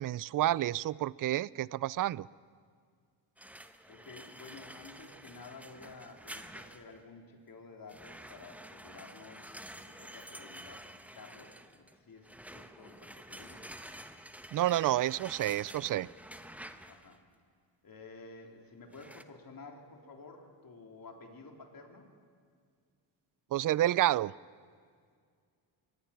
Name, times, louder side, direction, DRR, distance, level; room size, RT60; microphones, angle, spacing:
voice 1, 0.0-2.3 14.5-16.1 23.5-24.3, right 14 dB, 45° right, 23 dB, 0.5 m, -29 dB
sound 1, 3.4-7.0 7.9-17.2 18.9-19.2, right 1 dB, 5° right, 1.1 m, -49 dB
voice 2, 3.9-10.9 11.1-13.6 16.9-17.2 17.8-22.1, left 3 dB, 45° left, 2 dB, 3.7 m, -52 dB
23.0 x 20.0 x 6.0 m, 2.1 s
cardioid pair, 75°, 47 cm